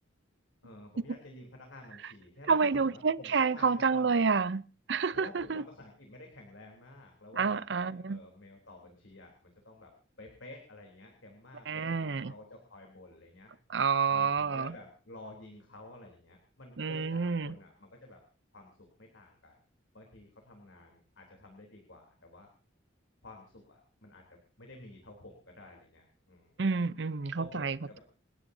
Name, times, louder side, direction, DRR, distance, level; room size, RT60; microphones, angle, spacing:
voice 1, 0.6-4.2 5.1-9.9 10.2-13.5 14.1-18.2 18.5-18.7 19.0-19.6 19.9-22.5 23.2-26.5 27.4-28.0, left 2 dB, 90° left, 3.3 m, -51 dB
voice 2, 2.5-4.6 4.9-5.6 7.4-8.2 11.7-12.3 13.7-14.7 16.8-17.5 26.6-28.0, right 5 dB, 65° right, 0.6 m, -29 dB
28.5 x 10.0 x 2.7 m
head